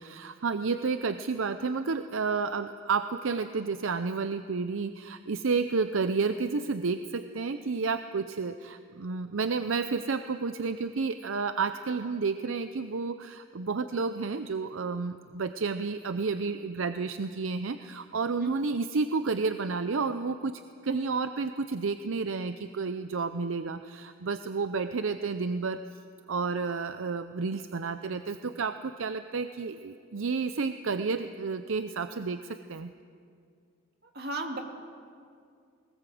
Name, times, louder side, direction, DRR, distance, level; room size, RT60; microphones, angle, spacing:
voice 1, 0.0-20.5 20.8-25.8 26.3-32.9, right 4 dB, 70° right, 10 dB, 0.6 m, -31 dB
voice 2, 34.1-34.6, right 2 dB, 50° right, 3 dB, 2.2 m, -34 dB
20.0 x 19.0 x 7.8 m, 2.3 s
head